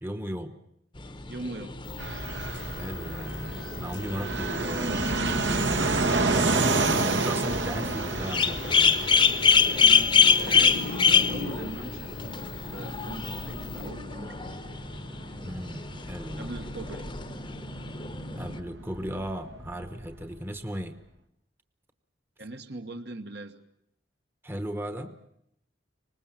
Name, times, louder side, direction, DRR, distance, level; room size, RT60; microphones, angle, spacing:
voice 1, 0.0-0.6 2.8-9.1 15.4-16.5 18.3-21.0 24.4-25.2, equal, 10° right, 9 dB, 1.1 m, -36 dB
sound 1, 1.0-18.6, left 6 dB, 25° left, 1.0 m, -27 dB
voice 2, 1.3-1.8 9.8-12.1 12.7-14.8 16.4-17.1 22.4-23.6, right 2 dB, 60° right, 6 dB, 1.5 m, -40 dB
sound 2, 1.8-13.9, left 3 dB, 65° left, 1.3 m, -40 dB
Fixed-wing aircraft airplane, 2.0-20.3, right 3 dB, 75° right, 2.1 m, -31 dB
25.5 x 20.0 x 7.5 m, 0.76 s
head